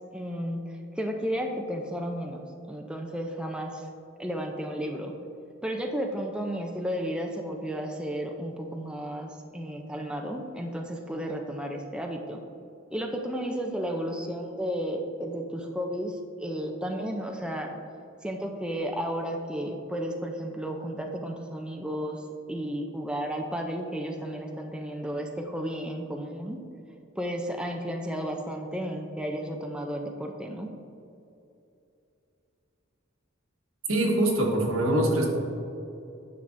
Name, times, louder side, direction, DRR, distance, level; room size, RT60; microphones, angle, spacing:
voice 1, 0.1-0.7 1.0-2.4 2.7-3.9 4.2-5.1 5.6-12.4 12.9-17.7 18.2-22.2 22.5-26.6 27.2-30.7, equal, 5° right, 2 dB, 0.5 m, -33 dB
voice 2, 33.9-35.3, right 1 dB, 85° right, -1 dB, 1.4 m, -23 dB
9.9 x 6.8 x 2.6 m, 2.7 s
head